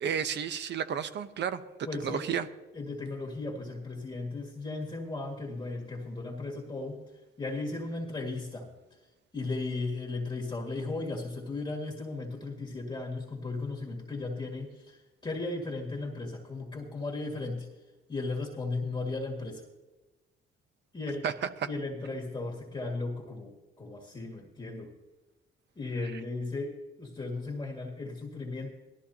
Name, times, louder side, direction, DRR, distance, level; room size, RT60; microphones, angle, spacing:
voice 1, 0.0-1.6 2.0-2.5 21.2-21.3, right 8 dB, 60° right, 11 dB, 0.8 m, -31 dB
voice 2, 1.9-2.2 2.7-7.0 7.4-8.7 9.3-17.7 18.1-19.6 20.9-21.3 21.7-25.0 25.8-28.7, left 3 dB, 20° left, 0 dB, 2.1 m, -36 dB
17.5 x 13.0 x 2.9 m, 1.1 s
cardioid pair, 90°, 20 cm